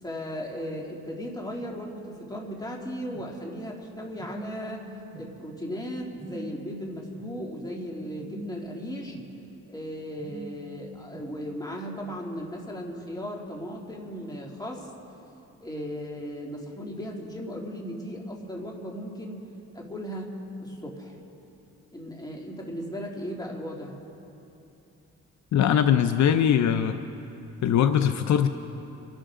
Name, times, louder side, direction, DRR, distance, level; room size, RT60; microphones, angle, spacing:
voice 1, 0.0-4.9 5.1-9.2 9.7-14.9 15.6-19.4 19.7-20.3 20.6-21.2 21.9-24.0, equal, 15° left, -1 dB, 2.8 m, -36 dB
Telephone, 2.4-3.2 4.2-5.2 6.2-7.2 8.2-9.2 10.2-11.2, right 1 dB, 25° right, 1.4 m, -44 dB
voice 2, 25.5-27.0 27.6-28.5, left 9 dB, 65° left, 9 dB, 0.7 m, -21 dB
26.5 x 12.5 x 3.8 m, 2.9 s
cardioid pair, 90°, 30 cm